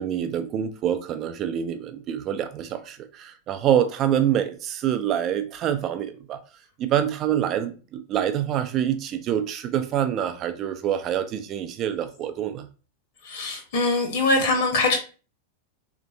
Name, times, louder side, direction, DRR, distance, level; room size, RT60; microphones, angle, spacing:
voice 1, 0.0-6.4 6.8-12.7, right 10 dB, 35° right, 0.5 m, -26 dB
voice 2, 13.2-15.0, left 2 dB, 55° left, 0.9 m, -22 dB
3.4 x 2.9 x 2.6 m
figure-of-eight pair, 90°, 0 cm